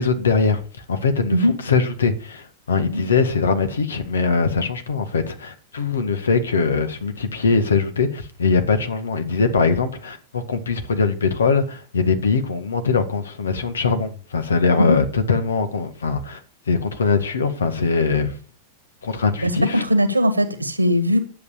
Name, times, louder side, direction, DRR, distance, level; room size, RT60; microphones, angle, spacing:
voice 1, 0.0-16.4 16.7-18.4 19.0-19.8, left 4 dB, 70° left, 1.8 m, -21 dB
voice 2, 19.4-21.2, equal, 85° right, 1.7 m, -19 dB
10.5 x 7.8 x 7.1 m
figure-of-eight pair, 90°, 0 cm